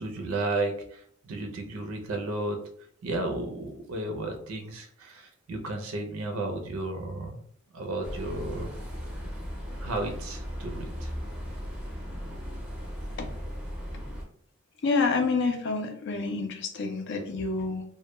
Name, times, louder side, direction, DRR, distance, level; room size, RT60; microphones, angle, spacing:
voice 1, 0.0-2.6 3.0-7.4 7.7-8.7 9.8-11.1, right 2 dB, 80° right, 4 dB, 0.5 m, -33 dB
sound 1, 8.0-14.2, equal, 5° right, 0.5 m, -37 dB
voice 2, 14.8-17.8, left 4 dB, 55° left, 4 dB, 0.4 m, -28 dB
2.1 x 2.1 x 2.9 m, 0.64 s
head